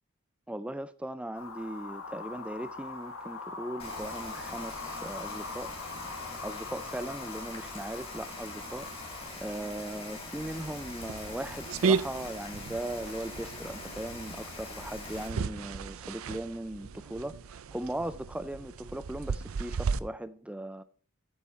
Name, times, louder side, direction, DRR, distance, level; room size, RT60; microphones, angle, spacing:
voice 1, 0.5-8.9 9.4-20.8, right 1 dB, 5° right, 0.4 m, -38 dB
sound 1, 1.3-9.3, left 4 dB, 75° left, 1.6 m, -42 dB
Rain, 3.8-15.3, left 2 dB, 25° left, 3.4 m, -43 dB
sound 2, 10.4-20.0, right 5 dB, 75° right, 0.5 m, -35 dB
9.3 x 7.1 x 5.5 m
head